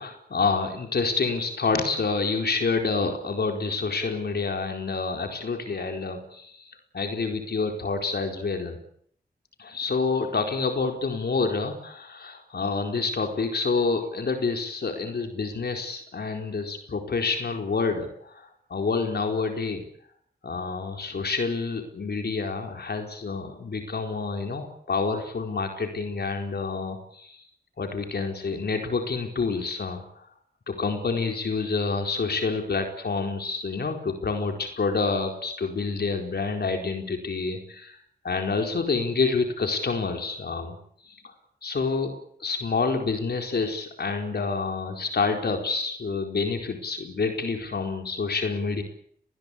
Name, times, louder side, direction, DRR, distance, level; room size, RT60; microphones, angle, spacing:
voice 1, 0.0-6.5 6.9-8.8 9.6-19.8 20.4-27.4 27.8-30.0 30.7-38.0 38.2-40.7 41.1-41.2 41.6-42.1 42.4-48.8, left 4 dB, 70° left, 4 dB, 4.4 m, -28 dB
24.5 x 20.5 x 8.5 m, 0.65 s
cardioid pair, 55°, 17 cm